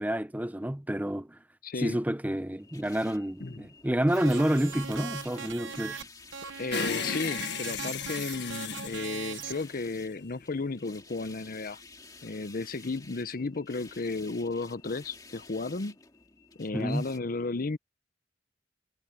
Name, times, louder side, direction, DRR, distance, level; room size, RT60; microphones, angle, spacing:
voice 1, 0.0-1.4 1.8-6.1 16.7-17.1, right 1 dB, 10° right, 0.7 m, -29 dB
voice 2, 1.6-2.0 3.4-3.7 6.6-11.8 12.2-16.0 16.6-17.8, left 3 dB, 50° left, 0.7 m, -34 dB
sound 1, 2.6-17.2, left 3 dB, 20° left, 2.1 m, -52 dB
sound 2, 4.1-6.0 6.3-9.6, right 7 dB, 70° right, 1.1 m, -40 dB
sound 3, 6.7-10.2, left 6 dB, 65° left, 1.5 m, -35 dB
head